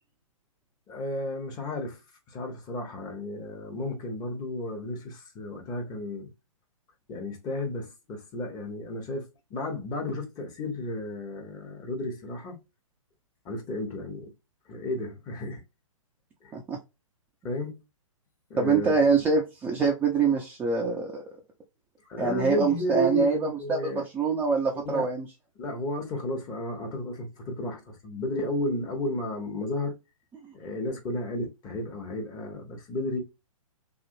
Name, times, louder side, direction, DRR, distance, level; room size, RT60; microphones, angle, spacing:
voice 1, 0.9-2.0 2.3-6.3 7.1-12.6 13.4-14.3 14.7-15.6 16.4-16.5 17.4-17.8 18.5-18.9 22.1-24.0 24.7-25.1 25.6-30.0 30.5-33.2, left 1 dB, 20° left, 1.0 m, -33 dB
voice 2, 18.6-21.2 22.2-25.3, right 5 dB, 10° right, 0.5 m, -25 dB
3.0 x 2.6 x 2.6 m
figure-of-eight pair, 125°, 18 cm